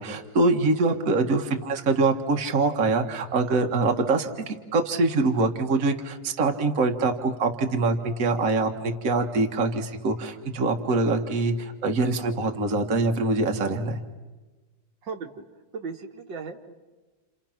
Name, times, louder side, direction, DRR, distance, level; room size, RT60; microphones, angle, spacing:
voice 1, 0.0-14.0, right 3 dB, 45° right, 4 dB, 1.9 m, -24 dB
voice 2, 15.0-15.4 15.7-16.7, right 5 dB, 75° right, 3 dB, 2.3 m, -36 dB
29.5 x 29.5 x 5.9 m, 1.2 s
omnidirectional pair, 2.0 m